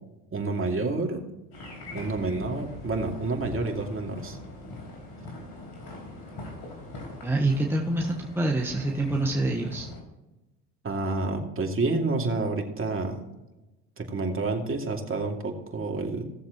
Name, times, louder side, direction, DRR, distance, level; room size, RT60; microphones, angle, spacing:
voice 1, 0.3-1.2 1.9-4.4 10.8-13.2 14.0-16.2, right 3 dB, 30° right, 2 dB, 2.6 m, -29 dB
sound 1, 1.5-10.0, left 2 dB, 55° left, 4.3 m, -41 dB
voice 2, 7.2-9.9, right 2 dB, 5° right, 0 dB, 1.3 m, -26 dB
17.5 x 7.3 x 3.0 m, 1.0 s
hypercardioid pair, 75°, 45 cm